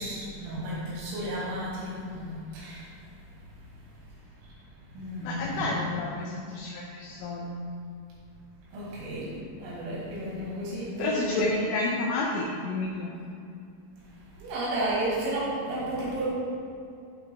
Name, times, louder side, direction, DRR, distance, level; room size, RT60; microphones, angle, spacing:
voice 1, 0.0-2.8 5.0-5.8 8.7-11.5 14.4-16.3, right 1 dB, 90° right, -8 dB, 4.4 m, -32 dB
voice 2, 5.2-7.6 11.0-13.1, left 2 dB, 80° left, -3 dB, 2.9 m, -30 dB
9.7 x 3.5 x 3.9 m, 2.5 s
omnidirectional pair, 5.8 m